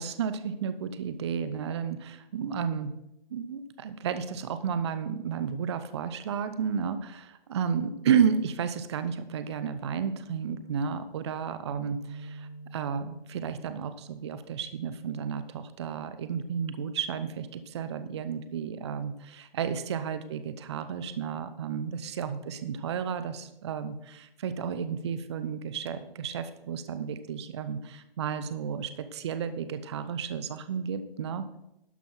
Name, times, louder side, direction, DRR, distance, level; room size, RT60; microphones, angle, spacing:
voice 1, 0.0-2.9 3.3-31.6, right 7 dB, 30° right, 11 dB, 0.6 m, -32 dB
sound 1, 11.7-15.2, right 3 dB, 85° right, 2.7 m, -46 dB
12.0 x 5.4 x 6.0 m, 0.85 s
hypercardioid pair, 155°, 29 cm